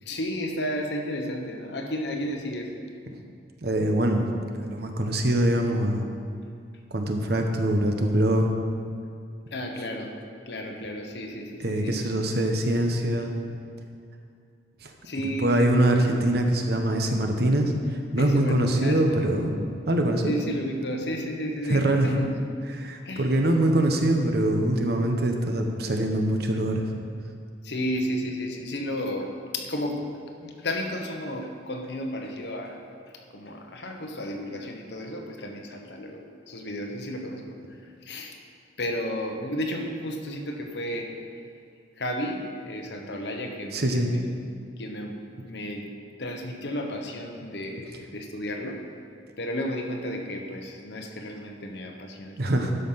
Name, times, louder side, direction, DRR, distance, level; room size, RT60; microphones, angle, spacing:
voice 1, 0.0-2.8 9.5-10.2 10.5-12.0 15.0-15.9 18.2-19.3 20.3-22.4 23.0-23.3 27.6-30.1 30.4-32.8 33.3-38.4 38.8-41.1 42.0-44.3 44.8-45.9 46.2-48.8 49.4-52.8, equal, 70° left, 3 dB, 1.2 m, -33 dB
voice 2, 3.6-4.3 4.6-6.0 6.9-8.5 11.6-13.3 14.8-14.9 15.4-19.5 19.9-20.3 21.7-22.1 22.7-26.8 43.7-44.1 52.4-52.7, right 1 dB, 60° right, 4 dB, 1.0 m, -23 dB
12.0 x 5.8 x 5.7 m, 2.4 s
head